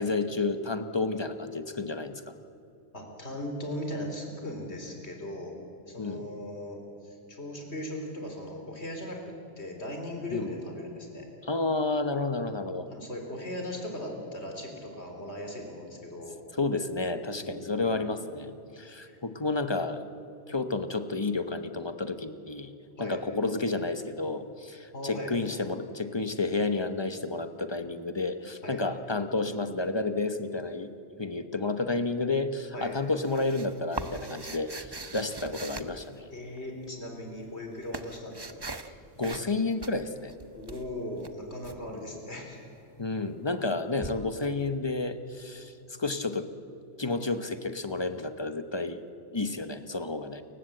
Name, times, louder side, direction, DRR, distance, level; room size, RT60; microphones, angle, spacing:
voice 1, 0.0-2.3 6.0-6.2 10.3-10.5 11.4-12.9 16.5-20.0 20.5-22.7 23.0-30.9 31.2-36.3 39.2-40.3 41.9-42.2 43.0-46.5 47.0-49.0 49.3-50.4, left 3 dB, 25° left, 9 dB, 1.0 m, -31 dB
voice 2, 2.9-5.6 5.9-11.3 12.9-16.4 17.3-18.1 19.0-19.2 23.0-23.2 24.9-25.3 28.6-28.8 32.7-32.9 36.3-38.7 40.6-42.6, left 1 dB, 70° left, 3 dB, 4.1 m, -38 dB
sound 1, 32.8-36.6 37.4-38.9 39.2-39.5 39.8-41.8 44.0-44.1, right 3 dB, 25° right, 0.8 m, -41 dB
28.5 x 16.0 x 7.9 m, 2.6 s
omnidirectional pair, 1.2 m